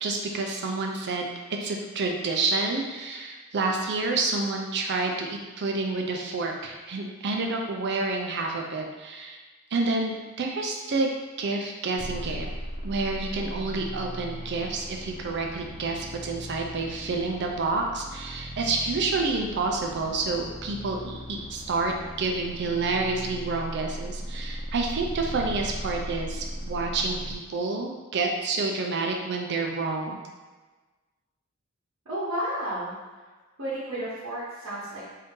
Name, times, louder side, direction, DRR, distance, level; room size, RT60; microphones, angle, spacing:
voice 1, 0.0-9.4 9.7-11.1 11.4-12.5 12.8-30.2, right 3 dB, 55° right, 2 dB, 0.5 m, -29 dB
sound 1, 12.0-27.3, equal, 35° left, 0.4 m, -38 dB
voice 2, 32.0-33.3 33.6-35.0, right 1 dB, 85° right, -10 dB, 1.0 m, -32 dB
2.7 x 2.7 x 3.6 m, 1.3 s
head